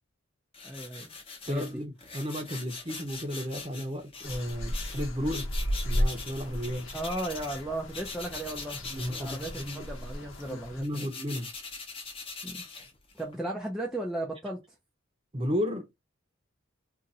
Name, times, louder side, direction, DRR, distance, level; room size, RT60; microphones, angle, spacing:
sound 1, 0.5-7.6 7.9-13.3, left 4 dB, 25° left, 0.8 m, -43 dB
voice 1, 0.6-1.1 1.5-1.8 6.9-8.8 9.2-11.1 12.4-12.6 13.1-14.6, right 1 dB, 5° right, 0.4 m, -35 dB
voice 2, 1.5-5.5 5.8-6.9 8.9-9.9 10.5-11.5 15.3-15.9, equal, 25° right, 0.8 m, -33 dB
sound 2, 4.2-10.8, equal, 65° left, 0.8 m, -34 dB
2.6 x 2.5 x 4.0 m
head